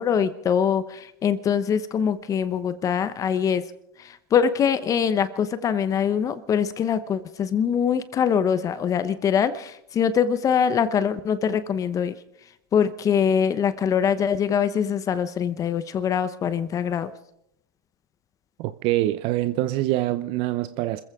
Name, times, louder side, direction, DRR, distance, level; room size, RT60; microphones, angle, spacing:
voice 1, 0.0-3.6 4.0-12.1 12.7-17.1, left 7 dB, 30° left, 0.9 m, -23 dB
voice 2, 18.6-21.0, right 15 dB, 50° right, 0.7 m, -25 dB
26.5 x 15.0 x 3.7 m
supercardioid pair, 115°, 12 cm